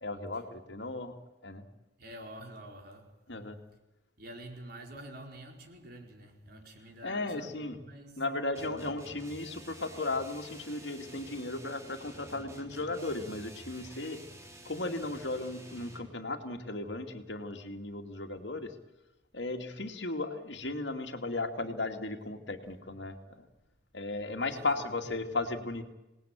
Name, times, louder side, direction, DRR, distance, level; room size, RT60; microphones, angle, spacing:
voice 1, 0.0-1.1 1.4-1.6 3.3-3.6 7.0-7.8 8.2-14.2 14.7-18.7 19.3-23.5 23.9-25.8, left 2 dB, 65° left, 2.4 m, -36 dB
voice 2, 2.0-3.2 4.2-8.3 24.5-25.1, right 1 dB, 55° right, 4.5 m, -48 dB
sound 1, 8.5-16.2, right 1 dB, 15° right, 3.2 m, -50 dB
26.5 x 19.5 x 8.9 m
head